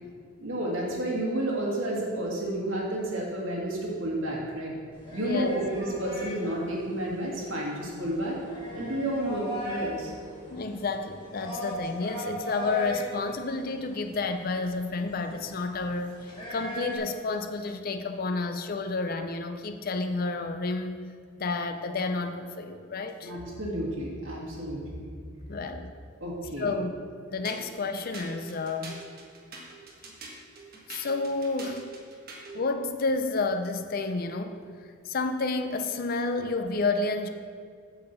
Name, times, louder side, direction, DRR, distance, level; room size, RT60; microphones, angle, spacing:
voice 1, 0.4-4.7 5.1-8.4 8.7-10.1 23.2-25.1 26.2-26.7, right 1 dB, 65° right, -4 dB, 2.0 m, -31 dB
sound 1, 4.9-17.0, left 1 dB, 25° left, 1.6 m, -39 dB
voice 2, 5.2-5.5 10.5-21.0 21.4-23.3 25.5-25.9 26.6-26.9 27.3-29.0 30.9-31.9 32.5-34.6 35.1-37.3, left 3 dB, 45° left, 8 dB, 0.5 m, -30 dB
sound 2, 27.4-32.6, right 3 dB, 45° right, 1.3 m, -44 dB
8.5 x 4.3 x 6.8 m, 2.1 s
head